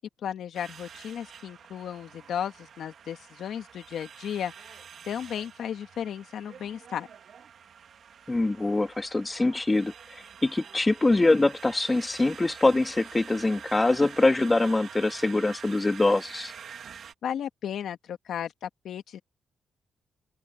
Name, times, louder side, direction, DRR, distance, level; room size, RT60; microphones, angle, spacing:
voice 1, 0.2-7.1 17.2-19.2, left 9 dB, 75° left, 2.1 m, -35 dB
sound 1, 0.5-17.1, right 7 dB, 65° right, 2.2 m, -47 dB
voice 2, 8.3-16.5, left 2 dB, 20° left, 1.7 m, -24 dB
open air
cardioid pair, 90°, 0 cm